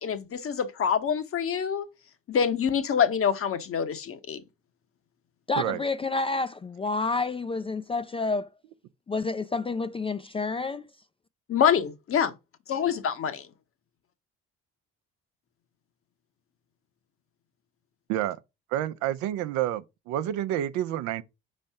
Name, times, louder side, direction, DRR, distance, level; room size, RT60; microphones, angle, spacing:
voice 1, 0.0-1.8 2.3-4.4 11.5-12.3 12.7-13.5, left 7 dB, 50° left, 1.0 m, -26 dB
voice 2, 5.5-8.5 9.1-10.8, left 3 dB, 20° left, 0.4 m, -29 dB
voice 3, 18.1-18.4 18.7-21.2, right 12 dB, 80° right, 0.6 m, -29 dB
5.3 x 3.3 x 5.5 m
supercardioid pair, 70°, 29 cm